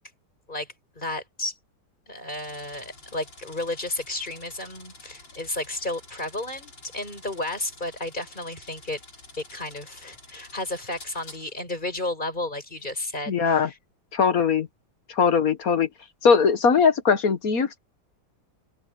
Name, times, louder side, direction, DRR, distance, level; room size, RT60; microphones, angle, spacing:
voice 1, 1.0-1.5 2.1-9.0 9.4-13.8, left 2 dB, 25° left, 7.8 m, -32 dB
sound 1, 2.3-11.8 12.8-13.0, left 2 dB, 75° left, 8.1 m, -49 dB
voice 2, 13.3-13.7 14.1-14.7 15.1-15.9 16.2-17.8, left 6 dB, 50° left, 1.6 m, -20 dB
open air
omnidirectional pair, 2.1 m